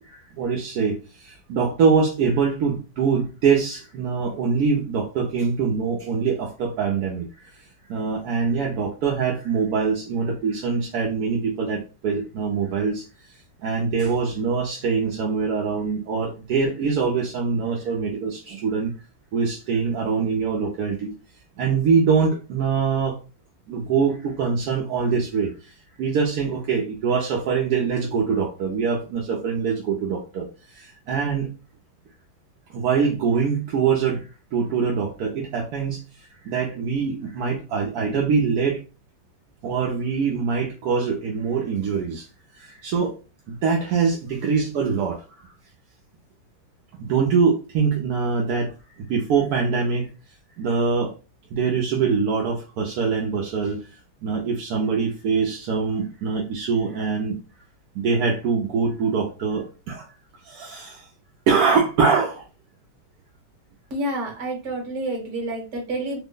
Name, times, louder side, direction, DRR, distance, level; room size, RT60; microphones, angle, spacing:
voice 1, 0.0-7.5 7.9-18.9 19.3-21.1 21.6-23.2 23.7-31.5 32.7-38.8 39.6-42.3 42.5-43.1 43.5-45.5 47.0-50.1 50.6-51.1 51.5-57.4 57.9-60.1 60.4-61.1 61.5-62.4, right 5 dB, 70° right, 0 dB, 0.9 m, -24 dB
voice 2, 63.9-66.2, right 1 dB, 45° right, 1 dB, 1.2 m, -29 dB
3.3 x 2.0 x 3.7 m, 0.33 s
omnidirectional pair, 2.1 m